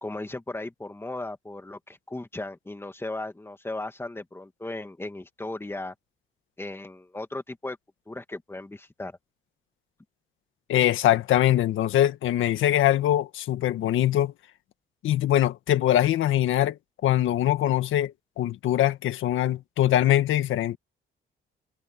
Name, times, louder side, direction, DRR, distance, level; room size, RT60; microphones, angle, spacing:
voice 1, 0.0-5.9 6.6-7.8 8.1-9.2, left 2 dB, 10° left, 2.1 m, -36 dB
voice 2, 10.7-14.3 15.0-20.8, left 12 dB, 80° left, 1.8 m, -23 dB
cardioid pair, 90°, 20 cm